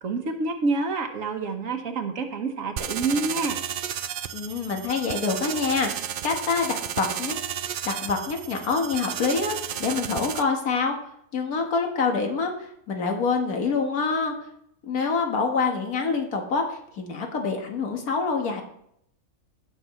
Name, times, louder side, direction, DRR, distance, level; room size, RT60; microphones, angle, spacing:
voice 1, 0.0-3.6, right 3 dB, 65° right, 5 dB, 1.4 m, -27 dB
sound 1, 2.8-10.4, right 9 dB, 80° right, 0.4 m, -33 dB
voice 2, 4.3-7.4 7.9-10.9 11.3-14.3 14.9-18.6, left 4 dB, 75° left, 3 dB, 1.9 m, -26 dB
16.5 x 5.9 x 3.1 m, 0.72 s
omnidirectional pair, 1.5 m